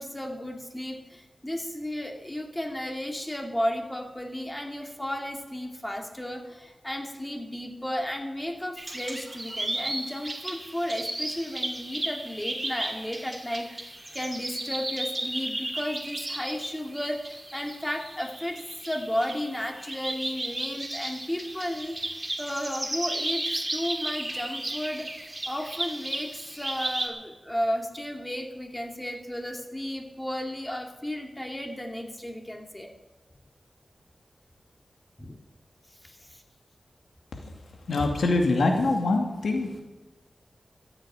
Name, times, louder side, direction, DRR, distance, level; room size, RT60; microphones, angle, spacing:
voice 1, 0.0-25.1 25.5-32.9 35.2-35.4 36.0-36.4, equal, 15° left, 2 dB, 2.6 m, -33 dB
sound 1, 8.8-27.1, right 1 dB, 20° right, 2.8 m, -34 dB
voice 2, 37.9-39.8, left 2 dB, 90° left, 2 dB, 2.4 m, -24 dB
14.5 x 8.7 x 9.0 m, 1.1 s
cardioid pair, 55°, 0 cm